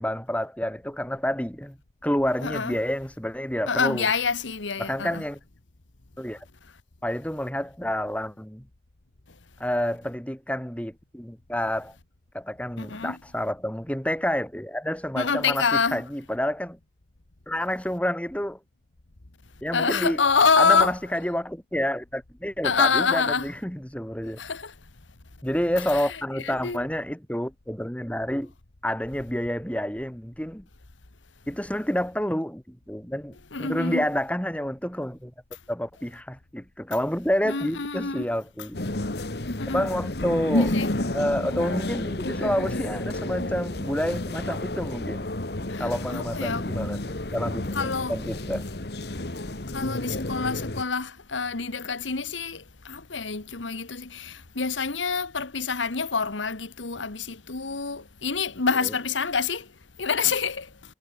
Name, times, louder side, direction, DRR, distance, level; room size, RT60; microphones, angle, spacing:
voice 1, 0.0-1.8 2.0-4.1 4.8-5.4 6.2-6.4 7.0-8.7 9.6-11.9 12.3-16.8 17.5-18.6 19.6-20.2 20.6-24.4 25.4-28.5 28.8-30.7 31.5-35.3 35.7-38.8 39.7-40.8 41.1-45.3 45.8-47.0 47.3-48.7 58.8-58.9, equal, 5° left, 2.7 m, -29 dB
voice 2, 2.4-2.8 3.7-5.2 12.8-13.2 15.1-16.0 19.7-20.9 22.6-23.5 24.4-24.7 25.9-26.0 26.4-26.8 33.5-34.0 37.4-38.3 39.6-39.8 40.5-40.9 45.7-46.6 47.7-48.1 49.7-59.7 60.0-60.7, left 5 dB, 90° left, 1.5 m, -26 dB
sound 1, 38.7-50.8, left 1 dB, 60° left, 1.7 m, -30 dB
head